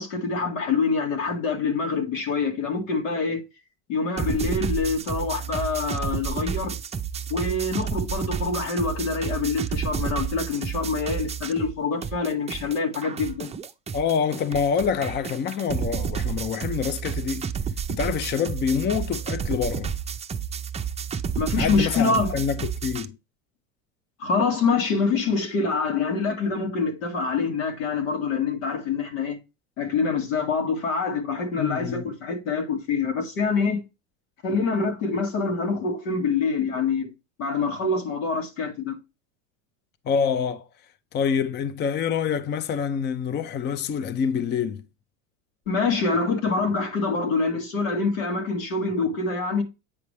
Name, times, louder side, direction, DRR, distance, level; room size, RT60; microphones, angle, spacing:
voice 1, 0.0-3.4 3.9-6.8 7.3-13.5 21.4-22.4 24.2-29.4 29.8-33.8 34.4-37.1 37.4-39.0 45.7-49.6, left 4 dB, 85° left, 2.1 m, -25 dB
sound 1, 4.2-11.8 12.0-23.1, right 7 dB, 15° right, 0.6 m, -31 dB
voice 2, 13.9-17.5 17.9-19.9 21.5-23.2 31.6-32.1 40.1-40.7 41.1-44.9, left 7 dB, 25° left, 0.6 m, -26 dB
8.6 x 5.3 x 3.3 m
supercardioid pair, 105°, 39 cm